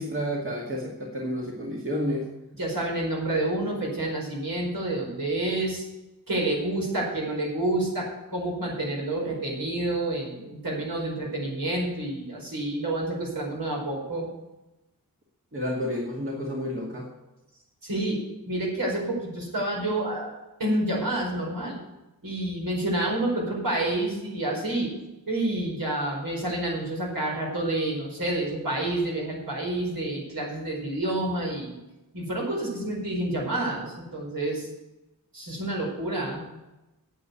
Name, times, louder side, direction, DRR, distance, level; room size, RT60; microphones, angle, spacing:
voice 1, 0.0-2.3 15.5-17.1, equal, 35° right, -2 dB, 2.1 m, -30 dB
voice 2, 2.6-5.9 6.3-14.3 17.8-18.2 18.5-21.8 22.2-24.9 25.3-31.8 32.1-34.7 35.3-36.4, right 1 dB, 70° right, -2 dB, 4.8 m, -29 dB
9.1 x 8.4 x 8.3 m, 0.98 s
wide cardioid pair, 105°, 36 cm